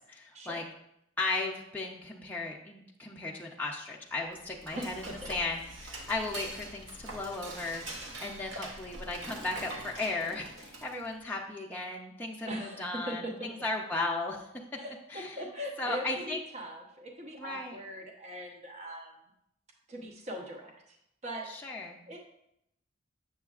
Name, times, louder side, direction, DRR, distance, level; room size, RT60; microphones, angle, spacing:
voice 1, 0.1-0.6 1.2-14.5 15.1-15.4 15.8-16.4 17.4-17.8 21.5-22.0, left 2 dB, 10° left, -2 dB, 0.5 m, -36 dB
Dishes pots and pans / Cutlery silverware, 4.2-11.1, right 2 dB, 70° right, 1.0 m, -44 dB
voice 2, 4.7-5.3 12.4-13.5 14.8-19.1 19.9-21.0 21.2-21.5 22.1-22.4, equal, 35° right, 1 dB, 0.8 m, -40 dB
7.2 x 6.7 x 2.4 m, 0.78 s
head